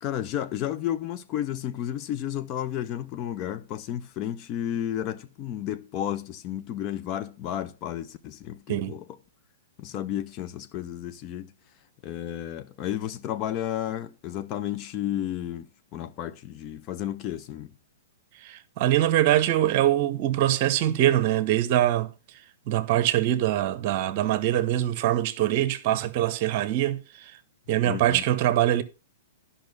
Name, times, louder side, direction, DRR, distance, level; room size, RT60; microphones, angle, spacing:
voice 1, 0.0-9.0 9.8-11.5 12.0-17.7 27.8-28.2, left 11 dB, 35° left, 0.8 m, -32 dB
voice 2, 18.4-22.1 22.7-27.4 27.7-28.8, right 13 dB, 45° right, 0.9 m, -23 dB
10.5 x 5.7 x 5.3 m
hypercardioid pair, 115°, 0 cm